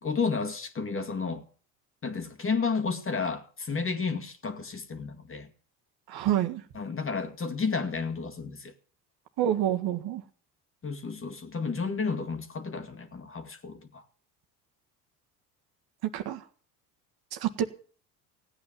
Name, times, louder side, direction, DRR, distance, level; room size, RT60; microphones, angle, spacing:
voice 1, 0.0-1.4 2.0-5.5 6.7-8.7 10.8-14.0, left 5 dB, 25° left, 2.3 m, -32 dB
voice 2, 6.1-6.6 9.4-10.2 16.1-16.4 17.3-17.6, right 11 dB, 55° right, 1.7 m, -27 dB
16.5 x 9.0 x 7.5 m
hypercardioid pair, 65°, 46 cm